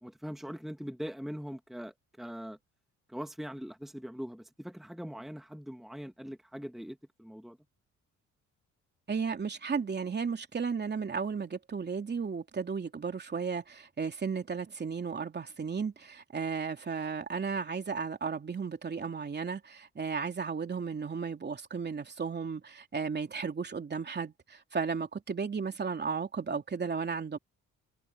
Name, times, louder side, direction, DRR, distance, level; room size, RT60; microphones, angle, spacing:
voice 1, 0.0-2.6 3.1-7.6, equal, ahead, 1.8 m, -42 dB
voice 2, 9.1-27.4, right 5 dB, 35° right, 3.1 m, -34 dB
cardioid pair, 90°, 30 cm